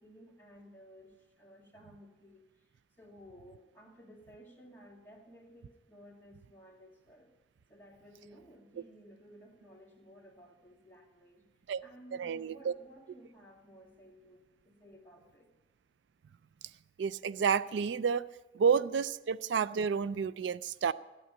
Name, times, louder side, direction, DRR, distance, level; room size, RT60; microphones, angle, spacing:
voice 1, 0.0-2.5 3.0-7.3 7.7-11.4 11.8-15.5, equal, 10° left, -2 dB, 2.1 m, -56 dB
voice 2, 12.2-12.7 17.0-18.3 18.5-20.9, right 6 dB, 75° right, 16 dB, 0.4 m, -30 dB
13.5 x 8.6 x 9.6 m, 1.1 s
head